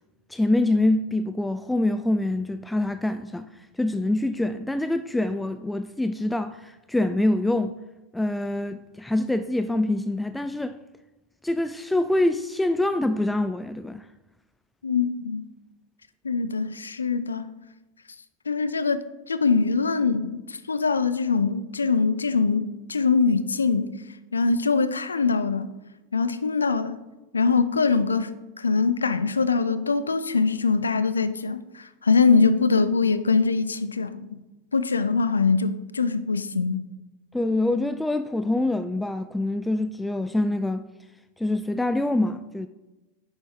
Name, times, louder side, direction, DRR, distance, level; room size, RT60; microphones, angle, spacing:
voice 1, 0.3-7.8 8.1-10.8 11.4-14.1 37.3-40.9 41.4-42.7, left 2 dB, 5° left, 0.4 m, -25 dB
voice 2, 14.8-15.4 16.2-17.5 18.5-23.9 24.3-25.7 26.1-27.0 27.3-34.4 34.7-36.9, left 4 dB, 90° left, 0.5 m, -23 dB
9.7 x 7.1 x 3.7 m
hypercardioid pair, 90°, 0 cm